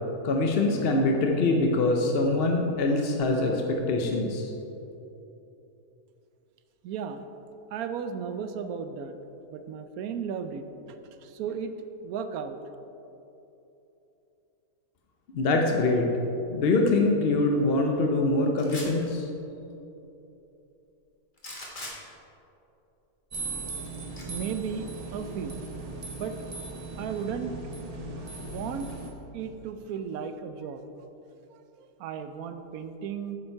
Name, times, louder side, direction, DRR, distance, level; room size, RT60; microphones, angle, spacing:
voice 1, 0.2-4.5 15.3-16.1 16.5-19.2, left 2 dB, 55° left, 2 dB, 0.7 m, -24 dB
voice 2, 6.8-7.2 7.7-9.2 9.5-11.7 12.0-12.6 24.3-25.7 26.2-26.4 27.0-27.5 28.3-28.9 29.3-30.8 31.5-33.4, right 7 dB, 75° right, 9 dB, 1.0 m, -35 dB
sound 1, 18.6-19.0 21.4-22.0 24.1-24.2, left 1 dB, 35° left, 1.5 m, -39 dB
sound 2, 23.3-29.1, right 3 dB, 35° right, 0.7 m, -38 dB
8.5 x 7.0 x 4.4 m, 2.9 s
omnidirectional pair, 1.6 m